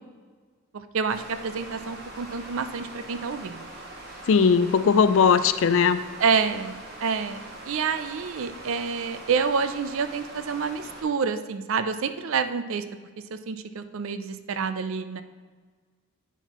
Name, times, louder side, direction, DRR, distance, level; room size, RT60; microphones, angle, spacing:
voice 1, 0.7-3.7 6.2-7.4 7.7-12.8 13.3-15.2, right 5 dB, 65° right, 10 dB, 0.4 m, -28 dB
sound 1, 1.1-11.0, right 1 dB, 50° right, 1.3 m, -42 dB
voice 2, 4.3-6.0, left 6 dB, 60° left, 12 dB, 0.3 m, -19 dB
9.0 x 5.7 x 3.0 m, 1.5 s
head